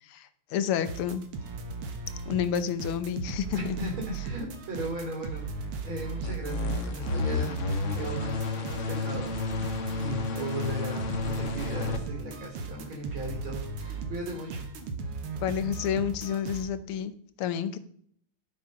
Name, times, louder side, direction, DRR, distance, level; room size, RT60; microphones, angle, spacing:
voice 1, 0.0-1.2 2.3-3.8 15.4-17.1 17.4-17.8, left 8 dB, 80° left, 12 dB, 1.7 m, -30 dB
sound 1, 0.8-16.7, right 4 dB, 90° right, 2.2 m, -37 dB
voice 2, 3.5-7.6 7.9-9.6 10.0-14.6, right 1 dB, 70° right, 1 dB, 3.8 m, -37 dB
sound 2, 6.2-12.0, left 3 dB, 45° left, 1.1 m, -31 dB
12.0 x 6.6 x 5.3 m, 0.62 s
omnidirectional pair, 2.4 m